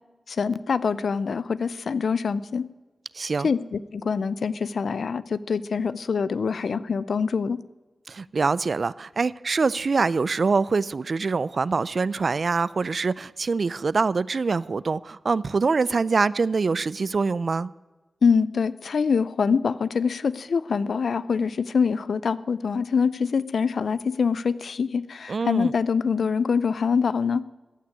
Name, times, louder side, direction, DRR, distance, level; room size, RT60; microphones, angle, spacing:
voice 1, 0.3-2.6 3.4-7.6 18.2-27.4, left 5 dB, 80° left, 17 dB, 0.5 m, -24 dB
voice 2, 3.1-3.5 8.1-17.7 25.3-25.7, right 4 dB, 65° right, 20 dB, 0.4 m, -24 dB
14.5 x 6.1 x 9.5 m, 1.2 s
cardioid pair, 55°, 0 cm